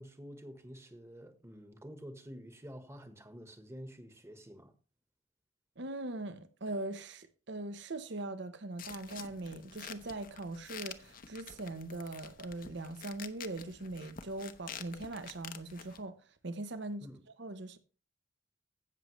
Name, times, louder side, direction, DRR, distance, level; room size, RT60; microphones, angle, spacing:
voice 1, 0.0-4.7 17.0-17.2, equal, 15° right, 1.2 m, -49 dB
voice 2, 5.8-16.1 16.4-17.1 17.4-17.8, right 2 dB, 60° right, 0.9 m, -41 dB
sound 1, 8.8-16.0, left 7 dB, 45° left, 0.8 m, -49 dB
16.0 x 6.6 x 3.1 m
head